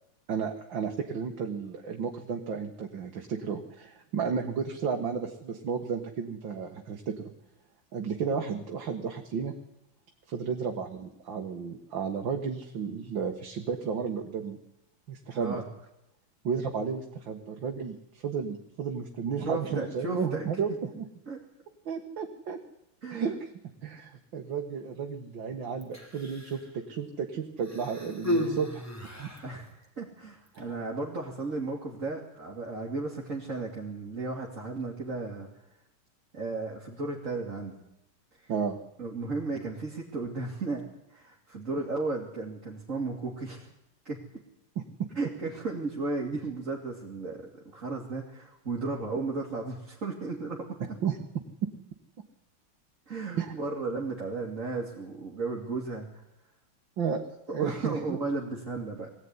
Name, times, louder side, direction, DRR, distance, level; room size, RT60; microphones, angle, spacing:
voice 1, 0.3-7.2 7.9-9.5 10.3-14.6 15.1-15.6 16.4-21.1 21.9-22.6 23.1-23.5 23.8-28.8 29.2-29.3 30.6-30.7 38.5-38.8 44.8-45.1 51.0-51.2 53.4-53.5 57.0-57.2 57.5-58.2, right 6 dB, 60° right, 3 dB, 2.4 m, -33 dB
voice 2, 15.3-15.7 19.4-20.5 21.3-21.4 23.0-23.3 29.4-35.5 36.3-37.8 38.4-38.5 39.0-43.7 44.0-44.2 45.1-50.8 53.1-56.1 57.6-59.1, right 3 dB, 35° right, -3 dB, 3.1 m, -34 dB
Human voice, 25.8-26.7 27.6-29.6 30.5-30.6, equal, 5° left, 3.4 m, -33 dB
22.5 x 16.5 x 9.8 m, 0.82 s
omnidirectional pair, 2.3 m